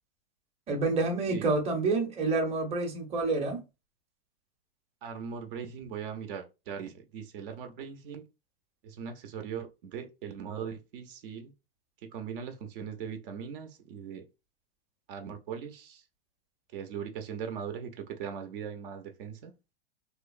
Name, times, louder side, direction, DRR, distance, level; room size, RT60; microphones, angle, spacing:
voice 1, 0.7-3.6, right 3 dB, 20° right, 0.7 m, -28 dB
voice 2, 5.0-8.2 8.8-11.5 12.1-14.2 15.1-16.0 16.7-19.5, right 7 dB, 65° right, 0.6 m, -39 dB
2.9 x 2.0 x 2.4 m
hypercardioid pair, 110°, 30 cm